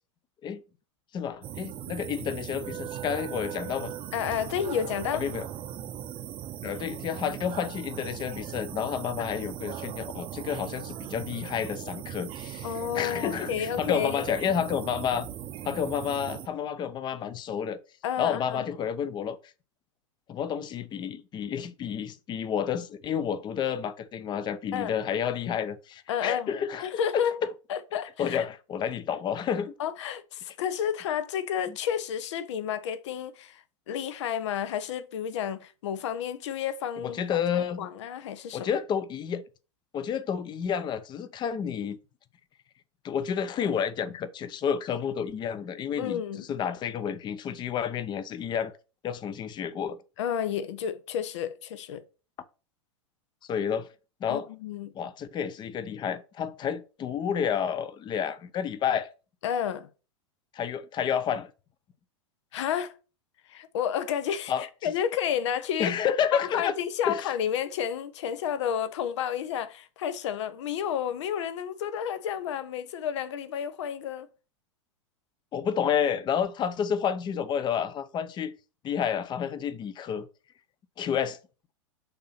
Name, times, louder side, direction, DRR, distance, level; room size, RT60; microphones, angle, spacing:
voice 1, 1.1-3.9 5.1-5.5 6.6-15.3 15.6-17.8 18.2-19.4 20.3-27.5 28.2-29.7 31.7-31.8 37.0-37.9 38.5-39.4 39.9-42.0 43.0-48.7 49.0-50.0 53.5-53.9 54.2-54.5 54.9-59.1 60.5-61.5 64.5-64.9 65.8-66.7 67.1-67.2 75.5-78.5 78.8-80.3 81.0-81.4, left 8 dB, 30° left, 0.6 m, -30 dB
sound 1, 1.4-16.5, right 10 dB, 35° right, 0.7 m, -39 dB
voice 2, 4.1-5.2 9.2-9.3 12.6-14.2 18.0-18.6 24.7-25.0 26.1-26.5 26.8-27.3 27.7-28.4 29.8-37.2 37.8-38.7 46.0-46.5 50.2-52.0 54.3-54.9 59.4-59.9 62.5-62.9 63.5-65.9 66.3-74.3, left 9 dB, 70° left, 0.7 m, -31 dB
6.6 x 2.8 x 5.7 m
hypercardioid pair, 105°, 16 cm